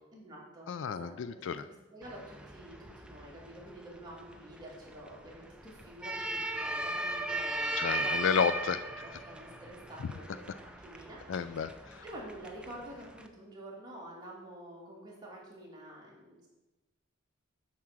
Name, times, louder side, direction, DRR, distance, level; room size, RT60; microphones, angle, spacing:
voice 1, 0.1-8.2 9.0-11.7 12.0-16.5, right 1 dB, 20° right, -5 dB, 2.5 m, -48 dB
voice 2, 0.7-1.6 7.8-9.0 11.3-12.0, left 6 dB, 65° left, 13 dB, 0.4 m, -32 dB
sound 1, 2.0-13.3, right 1 dB, 5° right, 0.5 m, -38 dB
8.5 x 4.7 x 6.1 m, 1.1 s
head